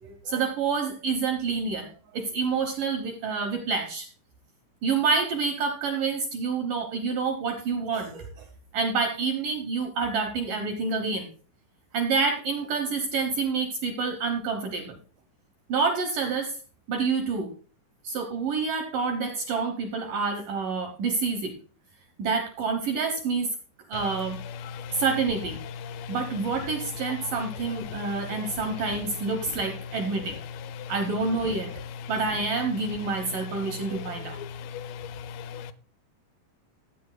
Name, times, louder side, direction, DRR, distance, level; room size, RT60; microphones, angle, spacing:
voice 1, 0.0-4.1 4.8-8.3 8.7-11.3 11.9-15.0 15.7-16.6 16.9-17.5 18.0-21.6 22.2-23.5 23.9-24.4 24.9-25.6 26.1-30.4 30.9-31.7 32.1-34.4, right 4 dB, 80° right, 1.9 m, -28 dB
voice 2, 34.6-35.1 35.4-35.7, left 7 dB, 80° left, 2.7 m, -38 dB
15.5 x 8.9 x 2.2 m
omnidirectional pair, 5.2 m